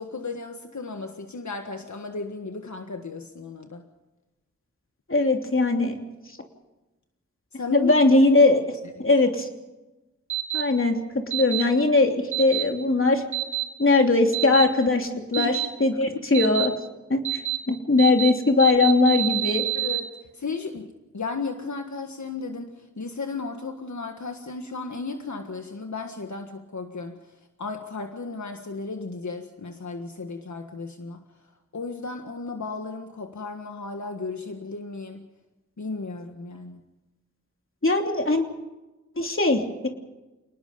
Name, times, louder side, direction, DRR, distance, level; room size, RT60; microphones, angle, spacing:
voice 1, 0.0-3.8 7.5-7.9 9.0-9.1 15.4-15.6 16.1-16.2 19.7-20.9 21.1-27.2 27.6-31.2 31.7-35.3 35.8-36.8, left 4 dB, 75° left, 5 dB, 1.7 m, -34 dB
voice 2, 5.1-6.0 7.7-8.6 9.0-9.5 10.5-11.0 11.3-13.2 13.8-15.5 15.8-16.7 17.1-17.4 17.7-19.6 37.8-38.5 39.2-39.9, left 3 dB, 45° left, 3 dB, 3.1 m, -20 dB
sound 1, 10.3-10.6 11.3-11.6 12.3-12.6 13.3-13.6 14.3-14.6 15.3-15.6 16.3-16.7 17.2-17.6 18.0-18.3 18.6-20.0, right 16 dB, 80° right, 4.3 m, -27 dB
29.0 x 19.5 x 5.3 m, 1.1 s
wide cardioid pair, 75°, 29 cm